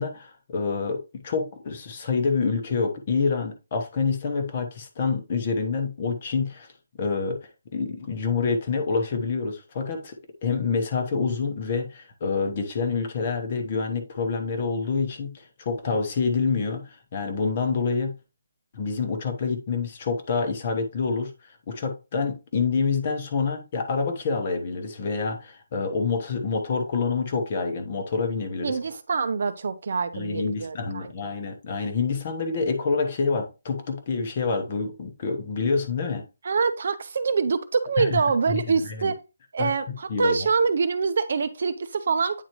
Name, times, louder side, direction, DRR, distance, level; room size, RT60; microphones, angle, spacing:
voice 1, 0.0-6.7 7.0-18.2 18.7-28.8 30.1-36.2 38.0-38.2 38.5-38.6 39.0-39.1 39.6-39.7 40.1-40.4, left 4 dB, 30° left, 1.0 m, -27 dB
voice 2, 28.6-31.1 36.4-39.2 39.5-42.4, right 5 dB, 45° right, 0.7 m, -25 dB
9.1 x 3.9 x 3.0 m
hypercardioid pair, 175°, 0 cm